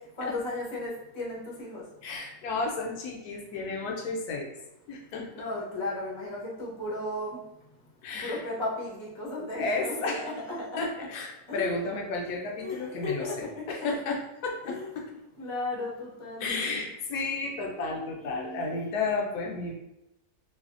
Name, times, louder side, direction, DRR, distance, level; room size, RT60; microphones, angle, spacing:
voice 1, 0.2-1.8 5.3-7.4 8.2-10.1 10.5-10.6 11.5-11.8 12.6-13.3 14.6-16.7 18.2-18.8, left 2 dB, 35° left, -6 dB, 0.5 m, -35 dB
voice 2, 2.0-4.5 4.9-5.3 8.0-8.4 9.6-10.3 10.8-15.0 16.4-19.7, left 3 dB, 75° left, 0 dB, 1.1 m, -32 dB
3.2 x 2.0 x 2.4 m, 0.90 s
omnidirectional pair, 1.7 m